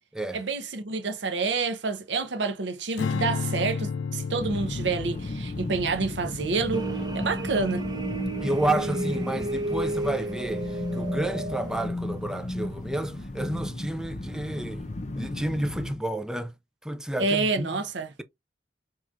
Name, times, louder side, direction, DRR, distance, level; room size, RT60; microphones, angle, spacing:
voice 1, 0.3-6.9 7.1-7.8 17.2-18.1, right 4 dB, 80° right, 0.7 m, -28 dB
Strum, 3.0-9.4, left 5 dB, 80° left, 0.4 m, -34 dB
sound 1, 4.4-16.0, left 1 dB, 40° left, 0.7 m, -35 dB
sound 2, 6.7-11.9, right 2 dB, 25° right, 0.8 m, -32 dB
voice 2, 8.4-14.8 15.2-16.5 16.8-17.7, right 1 dB, 5° right, 0.3 m, -30 dB
4.5 x 2.9 x 2.5 m
head